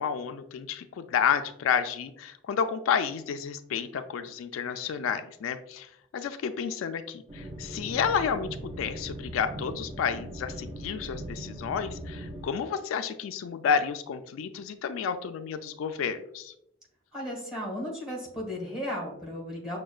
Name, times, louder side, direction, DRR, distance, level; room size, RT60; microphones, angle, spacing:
voice 1, 0.0-16.5, left 7 dB, 85° left, 9 dB, 0.3 m, -30 dB
sound 1, 7.3-12.5, right 1 dB, 25° right, 0.5 m, -40 dB
voice 2, 17.1-19.8, left 1 dB, 5° right, -3 dB, 1.2 m, -35 dB
6.1 x 2.2 x 2.3 m, 0.79 s
head